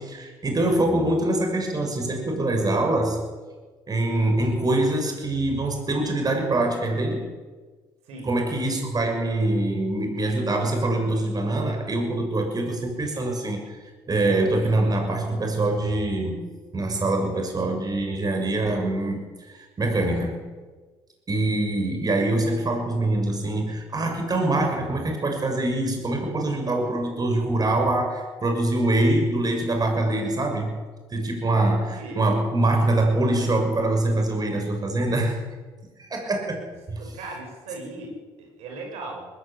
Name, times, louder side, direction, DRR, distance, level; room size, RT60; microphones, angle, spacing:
voice 1, 0.0-3.3 3.9-7.3 8.2-13.8 14.1-16.5 16.7-20.5 21.3-30.8 31.1-35.4 36.0-36.6 36.9-37.0, right 2 dB, 35° right, 3 dB, 6.8 m, -24 dB
voice 2, 31.4-32.2 37.0-39.3, right 2 dB, 80° right, 1 dB, 6.5 m, -38 dB
20.5 x 16.5 x 8.5 m, 1.4 s
supercardioid pair, 65°, 11 cm